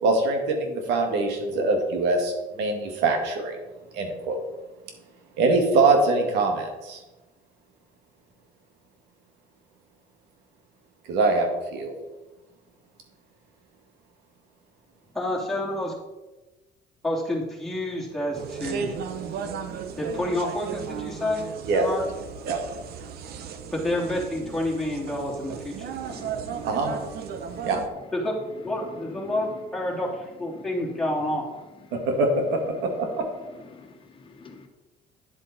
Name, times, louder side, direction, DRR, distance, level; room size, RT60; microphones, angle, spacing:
voice 1, 0.0-3.6 3.9-4.4 5.4-7.0 11.1-11.9 21.7-21.9 22.5-22.6 26.6-26.9 27.6-27.8 32.1-33.1, right 3 dB, 90° right, 3 dB, 2.1 m, -23 dB
voice 2, 15.1-15.9 17.0-18.9 19.8-21.4 21.7-22.0 23.7-26.0 28.1-28.4 28.6-31.4, left 1 dB, ahead, -5 dB, 3.3 m, -29 dB
sound 1, 18.3-27.9, right 7 dB, 70° right, 1.0 m, -35 dB
voice 3, 26.1-27.0 27.4-27.6 29.2-29.4 30.5-30.6 33.7-34.7, left 3 dB, 30° left, 3 dB, 1.6 m, -46 dB
10.0 x 7.9 x 4.2 m, 1.1 s
cardioid pair, 110°, 17 cm